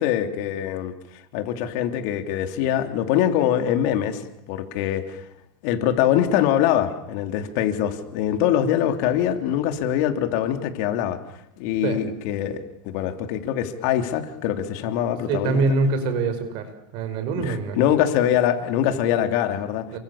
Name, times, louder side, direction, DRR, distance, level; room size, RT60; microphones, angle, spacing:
voice 1, 0.0-4.2 4.5-5.2 5.6-11.2 11.6-15.6 17.3-19.9, left 10 dB, 55° left, 7 dB, 3.1 m, -23 dB
voice 2, 15.3-16.7 16.9-17.8 19.9-20.0, right 3 dB, 45° right, 9 dB, 5.3 m, -24 dB
29.5 x 24.5 x 7.2 m, 0.78 s
supercardioid pair, 150°, 11 cm